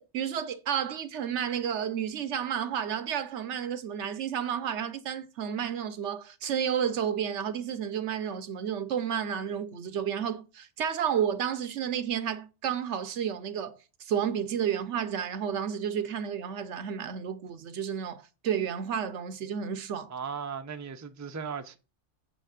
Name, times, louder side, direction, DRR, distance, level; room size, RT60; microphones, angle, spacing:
voice 1, 0.0-20.1, right 8 dB, 75° right, 1.0 m, -31 dB
voice 2, 20.1-21.8, right 6 dB, 20° right, 0.5 m, -37 dB
8.3 x 3.5 x 6.5 m
omnidirectional pair, 1.2 m